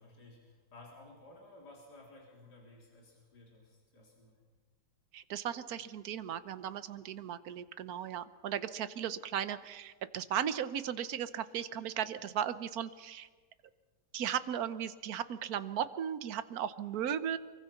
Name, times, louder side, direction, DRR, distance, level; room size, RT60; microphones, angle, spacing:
voice 1, 0.0-4.4, left 2 dB, 65° left, -2 dB, 4.3 m, -56 dB
voice 2, 5.1-13.3 14.1-17.4, right 9 dB, 60° right, 13 dB, 1.4 m, -36 dB
25.0 x 23.5 x 5.8 m, 1.4 s
omnidirectional pair, 1.9 m